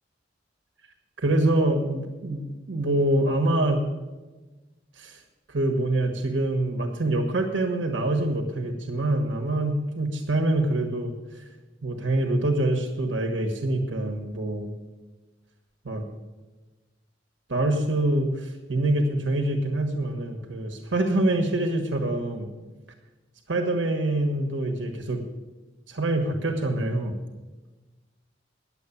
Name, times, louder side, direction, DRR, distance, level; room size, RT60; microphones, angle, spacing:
voice 1, 1.2-3.9 5.0-5.2 5.5-11.1 11.8-14.7 15.8-16.0 17.5-22.5 23.5-25.2 25.9-27.2, right 1 dB, 85° right, 3 dB, 1.4 m, -25 dB
10.5 x 7.9 x 9.8 m, 1.2 s
head